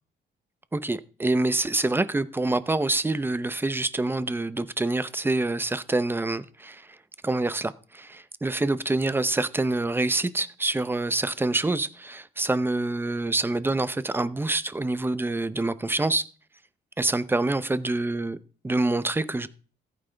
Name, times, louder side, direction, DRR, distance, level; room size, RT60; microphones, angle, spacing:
voice 1, 0.7-6.9 7.2-16.3 17.0-18.4 18.6-19.5, right 2 dB, 10° right, 0.6 m, -26 dB
15.0 x 9.1 x 3.4 m
cardioid pair, 130°, 19 cm